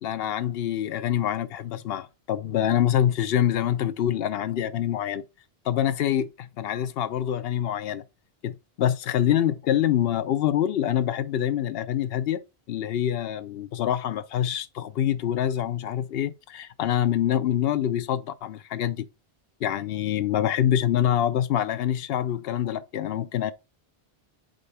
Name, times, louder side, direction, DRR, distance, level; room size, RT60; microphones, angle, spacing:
voice 1, 0.0-5.2 5.7-8.0 8.4-12.4 12.7-19.1 19.6-23.5, left 10 dB, 75° left, 0.8 m, -25 dB
5.2 x 3.6 x 5.4 m
omnidirectional pair, 1.0 m